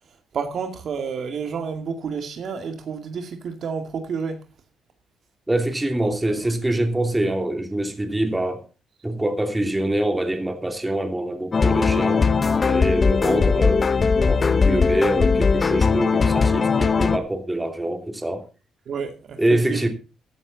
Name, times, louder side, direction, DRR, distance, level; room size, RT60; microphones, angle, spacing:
voice 1, 0.3-4.4 6.0-6.5 18.9-19.4 19.7-19.9, right 6 dB, 60° right, 2.3 m, -30 dB
voice 2, 5.5-8.6 9.0-12.3 12.6-18.4 19.4-19.9, right 1 dB, 15° right, 2.8 m, -25 dB
sound 1, 11.5-17.2, left 5 dB, 35° left, 1.0 m, -19 dB
14.5 x 11.0 x 4.1 m
cardioid pair, 90°, 0 cm